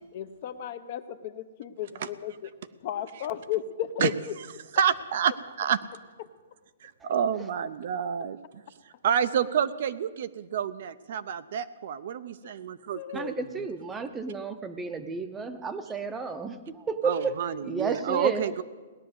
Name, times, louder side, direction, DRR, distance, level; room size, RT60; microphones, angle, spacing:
voice 1, 0.1-4.4 6.2-6.3 7.4-7.5 8.2-8.3 12.4-12.5 12.9-13.5, left 10 dB, 35° left, 11 dB, 0.7 m, -35 dB
voice 2, 4.7-5.3 5.6-5.8 6.8-8.4 9.0-13.3 17.0-18.6, right 8 dB, 45° right, 13 dB, 0.5 m, -28 dB
voice 3, 13.1-17.4 17.6-18.5, right 4 dB, 10° right, 9 dB, 0.7 m, -32 dB
17.5 x 10.5 x 7.9 m, 1.3 s
hypercardioid pair, 175°, 0 cm